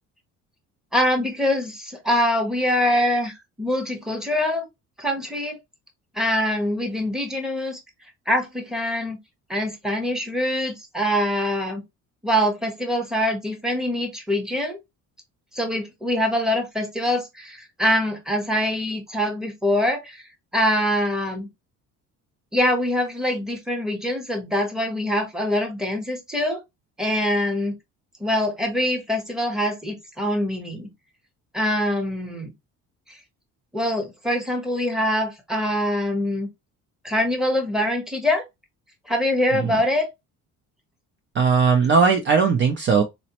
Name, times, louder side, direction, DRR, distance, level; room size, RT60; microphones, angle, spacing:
voice 1, 0.9-4.7 5.0-5.6 6.1-7.8 8.3-9.2 9.5-11.8 12.2-14.8 15.5-20.2 20.5-21.5 22.5-26.6 27.0-27.7 28.2-30.9 31.5-32.5 33.7-36.5 37.0-38.4 39.1-40.1, left 1 dB, ahead, 0.8 m, -24 dB
voice 2, 41.3-43.0, right 5 dB, 40° right, 0.4 m, -18 dB
4.0 x 2.1 x 2.8 m
cardioid pair, 155°, 30 cm